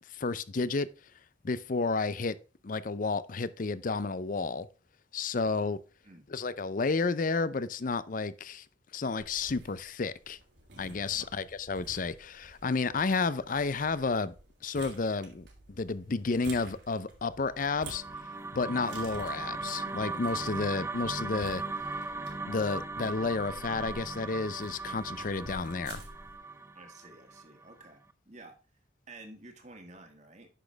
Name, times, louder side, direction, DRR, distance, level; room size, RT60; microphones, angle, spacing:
voice 1, 0.1-0.9 1.4-2.3 2.6-4.7 5.1-5.8 6.3-8.6 8.9-10.4 10.8-14.3 14.6-18.0 18.5-21.6 22.5-26.0, left 4 dB, 45° left, 0.5 m, -31 dB
sound 1, 9.2-26.4, right 2 dB, 75° right, 3.2 m, -51 dB
Bass drum, 11.5-26.0, right 1 dB, 75° left, 4.9 m, -60 dB
sound 2, 17.5-27.8, right 3 dB, 15° right, 0.5 m, -38 dB
voice 2, 26.8-28.0 28.3-28.5 29.1-30.5, right 2 dB, 40° right, 1.9 m, -51 dB
10.0 x 6.2 x 3.4 m
head